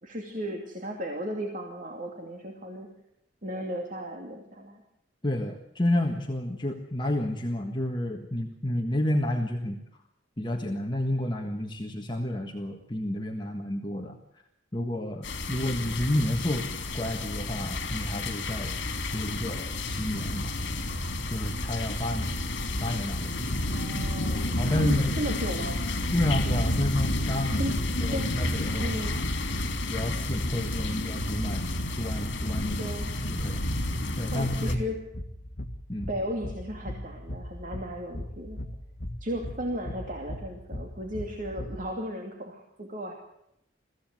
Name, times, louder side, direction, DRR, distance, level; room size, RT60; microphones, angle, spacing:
voice 1, 0.0-2.9 3.4-4.8 23.7-25.8 27.6-27.8 28.1-28.4 28.8-29.1 32.8-33.1 34.3-35.1 36.1-38.6 39.2-43.1, equal, 45° right, 2 dB, 2.7 m, -35 dB
voice 2, 5.2-9.8 10.4-14.2 14.7-16.7 16.9-18.8 19.1-20.5 21.3-22.4 22.8-23.5 24.5-25.2 26.1-29.3 29.8-31.7 32.0-32.9 33.3-33.6 34.2-34.8 35.9-36.1, left 1 dB, 25° left, 3 dB, 1.6 m, -30 dB
sound 1, 15.2-34.8, left 1 dB, 70° left, 3.2 m, -30 dB
sound 2, 22.3-41.9, left 1 dB, 50° left, 1.7 m, -40 dB
22.5 x 15.5 x 9.3 m, 0.80 s
head